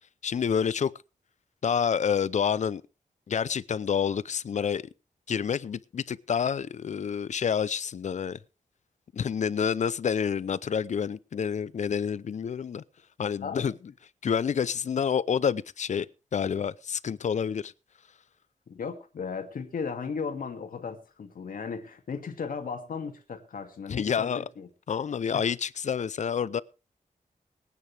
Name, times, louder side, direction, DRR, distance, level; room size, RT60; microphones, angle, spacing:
voice 1, 0.2-0.9 1.6-2.8 3.3-4.8 5.3-8.4 9.1-12.8 13.2-13.7 14.2-16.1 16.3-17.7 23.9-24.4 24.9-26.6, left 7 dB, 55° left, 0.6 m, -28 dB
voice 2, 18.7-24.7 25.3-25.4, left 5 dB, 75° left, 2.2 m, -36 dB
23.0 x 9.6 x 3.4 m
wide cardioid pair, 160°, 15 cm